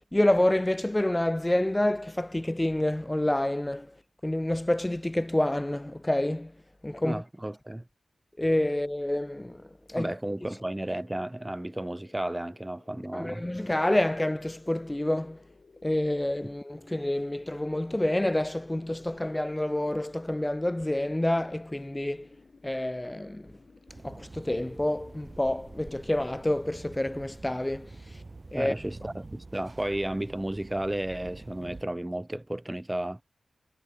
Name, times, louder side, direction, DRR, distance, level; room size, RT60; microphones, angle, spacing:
voice 1, 0.1-3.9 4.2-6.5 6.8-7.2 8.4-10.1 13.1-15.4 15.8-22.3 22.6-23.5 24.0-28.2 28.5-28.7, left 1 dB, 15° left, 0.5 m, -28 dB
voice 2, 7.0-7.9 10.0-13.4 28.5-33.2, right 1 dB, 15° right, 1.0 m, -33 dB
sound 1, 10.3-26.2, left 4 dB, 55° left, 5.7 m, -59 dB
sound 2, 23.9-31.9, right 3 dB, 35° right, 3.5 m, -47 dB
wide cardioid pair, 80°, 0 cm